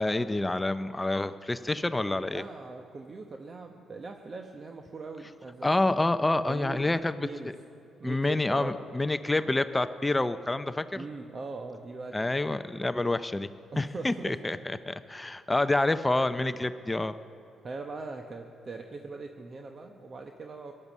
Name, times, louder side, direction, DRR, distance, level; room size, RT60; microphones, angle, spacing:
voice 1, 0.0-2.4 5.6-7.2 8.0-11.0 12.1-13.5 13.8-17.2, left 2 dB, 15° left, 11 dB, 0.5 m, -28 dB
voice 2, 2.3-5.9 6.4-7.5 8.0-8.8 10.9-12.2 13.7-14.4 16.4-16.6 17.6-20.7, right 3 dB, 40° right, 4 dB, 1.0 m, -41 dB
17.5 x 11.0 x 7.3 m, 2.9 s
cardioid pair, 90°, 0 cm